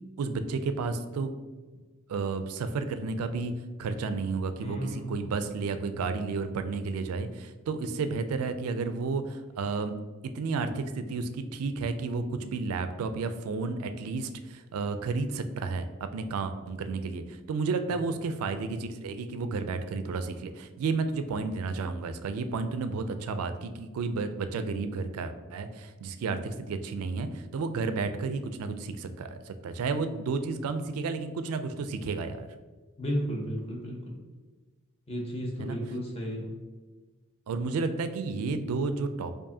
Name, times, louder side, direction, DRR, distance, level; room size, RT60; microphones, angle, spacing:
voice 1, 0.2-1.3 2.1-3.5 3.8-9.9 10.2-32.5 35.6-35.8 37.5-39.4, right 4 dB, 80° right, 10 dB, 0.3 m, -32 dB
voice 2, 4.6-5.2 33.0-34.2 35.1-36.5, equal, 30° left, -1 dB, 0.7 m, -33 dB
4.7 x 2.5 x 2.7 m, 1.3 s
head